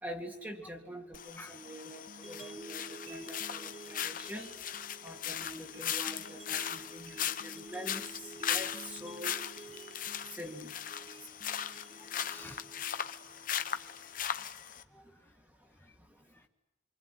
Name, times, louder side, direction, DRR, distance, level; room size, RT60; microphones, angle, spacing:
voice 1, 0.0-4.5 5.0-9.4 10.3-10.7, equal, 10° right, 1 dB, 2.1 m, -45 dB
sound 1, 1.1-14.8, left 9 dB, 45° left, 1.0 m, -38 dB
sound 2, 2.1-14.1, right 3 dB, 35° right, 1.3 m, -51 dB
voice 2, 12.0-12.7 13.7-14.1 14.9-15.4 15.8-16.0 16.3-16.5, left 2 dB, 10° left, 4 dB, 1.2 m, -53 dB
27.0 x 24.5 x 9.2 m, 0.96 s
head